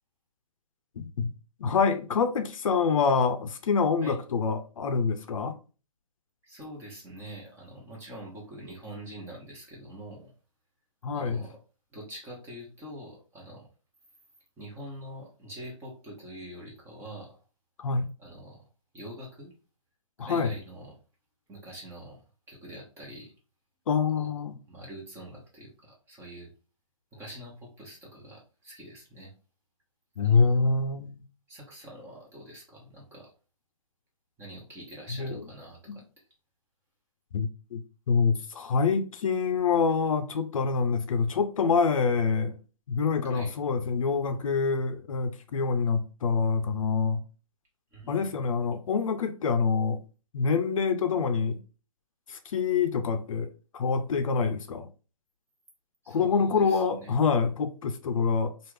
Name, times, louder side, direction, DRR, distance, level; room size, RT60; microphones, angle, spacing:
voice 1, 1.0-1.3 1.6-5.5 11.0-11.4 17.8-18.1 20.2-20.5 23.9-24.6 30.2-31.2 35.2-35.4 37.3-37.8 38.1-42.6 42.9-47.2 48.1-50.0 50.3-51.6 52.3-54.9 56.1-58.5, left 5 dB, 65° left, 0.6 m, -26 dB
voice 2, 6.4-10.3 11.1-11.6 11.9-13.7 14.6-17.4 18.2-18.7 18.9-19.5 20.2-20.9 21.5-22.2 22.5-23.3 24.2-24.3 24.7-26.5 27.1-29.3 30.2-30.6 31.5-33.3 34.4-36.0 43.2-43.5 47.9-48.3 56.0-57.1, equal, 15° right, 1.1 m, -45 dB
3.2 x 2.5 x 3.2 m
hypercardioid pair, 145°, 18 cm